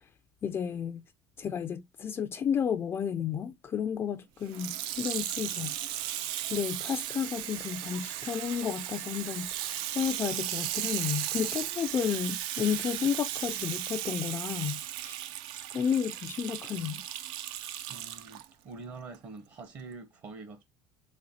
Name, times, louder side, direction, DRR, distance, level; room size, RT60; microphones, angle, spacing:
voice 1, 0.4-1.0 1.4-5.8 6.5-9.5 9.9-15.1 15.7-17.0, left 8 dB, 30° left, 0.3 m, -32 dB
Water tap faucet / Sink (filling or washing), 4.4-18.4 19.1-19.2, right 12 dB, 75° right, 0.4 m, -36 dB
sound 1, 4.5-12.2, right 6 dB, 90° right, 1.3 m, -55 dB
voice 2, 17.9-20.6, right 4 dB, 45° right, 0.9 m, -45 dB
4.1 x 3.4 x 2.7 m
cardioid pair, 125°, 8 cm